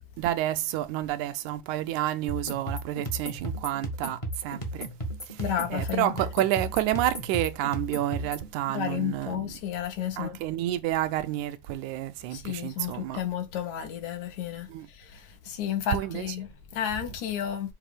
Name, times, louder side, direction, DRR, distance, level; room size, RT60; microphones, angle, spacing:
voice 1, 0.2-4.9 5.2-9.6 10.2-13.2 14.7-14.9 15.9-16.4, right 13 dB, 80° right, 2.0 m, -30 dB
sound 1, 2.3-8.5, right 1 dB, 25° left, 0.6 m, -35 dB
voice 2, 5.4-6.1 8.7-10.4 12.3-14.7 15.1-17.7, left 9 dB, 75° left, 2.6 m, -32 dB
7.3 x 2.6 x 4.9 m
omnidirectional pair, 3.4 m